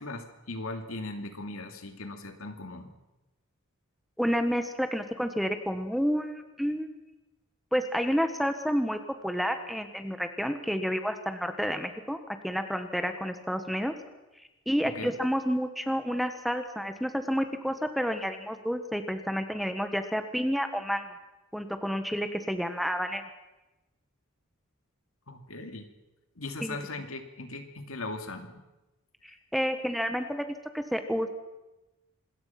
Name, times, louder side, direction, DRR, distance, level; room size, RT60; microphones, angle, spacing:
voice 1, 0.0-2.9 14.8-15.1 25.3-25.9 26.4-28.6, left 2 dB, 70° left, 6 dB, 2.7 m, -39 dB
voice 2, 4.2-6.9 7.7-12.2 12.4-13.9 14.7-21.1 21.5-23.3 26.6-26.8 29.2-31.3, equal, ahead, 8 dB, 1.4 m, -30 dB
26.5 x 21.0 x 5.9 m, 1.0 s
head